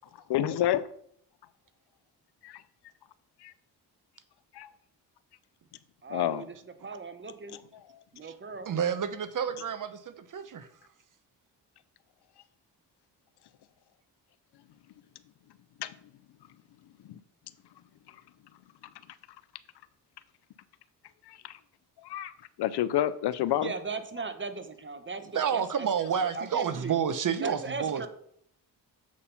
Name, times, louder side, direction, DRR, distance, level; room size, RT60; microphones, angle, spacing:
voice 1, 0.3-0.9 2.4-2.6 3.4-3.5 4.5-4.7 6.1-6.4 15.8-15.9 17.1-17.2 21.3-21.6 22.0-22.3 22.6-23.7, left 12 dB, 70° left, 0.6 m, -29 dB
voice 2, 6.0-6.6 6.8-7.6 8.1-8.7 23.6-27.0 27.4-28.1, right 4 dB, 30° right, 1.0 m, -38 dB
voice 3, 8.7-10.7 25.3-28.1, right 7 dB, 50° right, 0.7 m, -30 dB
7.3 x 4.2 x 5.6 m
cardioid pair, 70°, 41 cm